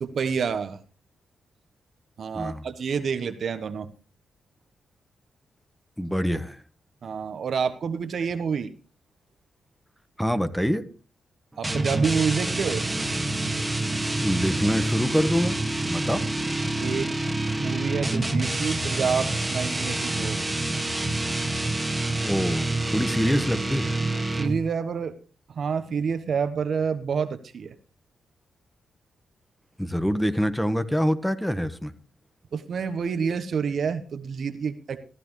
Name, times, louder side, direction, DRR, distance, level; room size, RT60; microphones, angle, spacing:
voice 1, 0.0-0.8 2.2-3.9 7.0-8.7 11.6-12.8 16.8-17.2 17.6-20.4 24.4-25.1 25.6-27.7 32.5-35.0, right 6 dB, 65° right, 10 dB, 1.2 m, -28 dB
voice 2, 2.3-2.6 6.0-6.6 10.2-10.8 14.2-15.6 15.9-16.2 22.2-23.9 29.8-31.9, equal, 5° left, 11 dB, 1.4 m, -25 dB
sound 1, 11.6-24.7, right 2 dB, 20° right, 1.9 m, -27 dB
15.0 x 13.5 x 3.2 m, 0.36 s
supercardioid pair, 50°, 0 cm